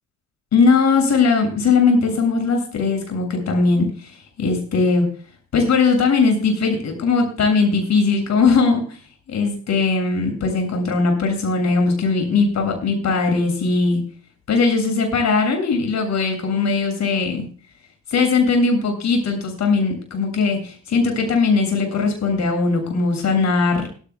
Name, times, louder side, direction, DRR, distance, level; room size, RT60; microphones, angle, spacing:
voice 1, 0.5-5.1 5.5-9.0 9.3-14.0 14.5-17.5 18.1-23.9, left 4 dB, 60° left, 4 dB, 7.5 m, -19 dB
17.5 x 16.0 x 2.4 m, 0.41 s
cardioid pair, 90°, 30 cm